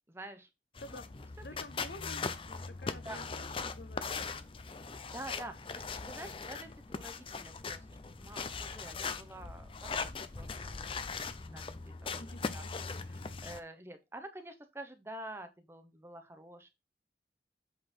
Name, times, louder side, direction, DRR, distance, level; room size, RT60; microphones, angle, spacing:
voice 1, 0.1-0.5 0.9-1.0 3.0-3.2 5.1-12.6 13.1-16.7, right 1 dB, 15° right, 0.8 m, -48 dB
voice 2, 0.8-1.1 1.4-4.4 12.1-13.2, left 2 dB, 60° left, 0.8 m, -50 dB
sound 1, 0.8-13.6, left 4 dB, 30° left, 0.5 m, -40 dB
7.9 x 3.9 x 4.3 m
head